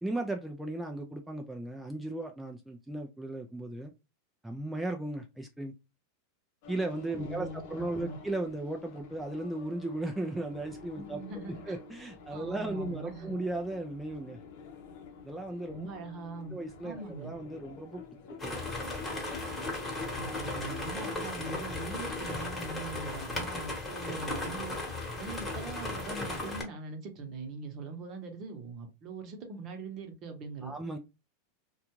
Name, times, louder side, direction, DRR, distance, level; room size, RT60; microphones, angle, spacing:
voice 1, 0.0-3.9 4.4-5.7 6.7-11.2 11.7-14.4 15.2-15.9 16.5-18.7 30.6-31.0, right 2 dB, 5° right, 0.4 m, -36 dB
sound 1, 6.6-22.6, left 6 dB, 60° left, 0.7 m, -48 dB
voice 2, 7.1-7.6 7.9-8.2 10.9-11.8 12.3-13.4 15.7-17.3 19.9-24.7 25.1-30.7, right 3 dB, 45° right, 0.9 m, -42 dB
sound 2, 18.4-26.6, left 2 dB, 15° left, 1.1 m, -36 dB
2.4 x 2.3 x 3.0 m
hypercardioid pair, 115°, 0 cm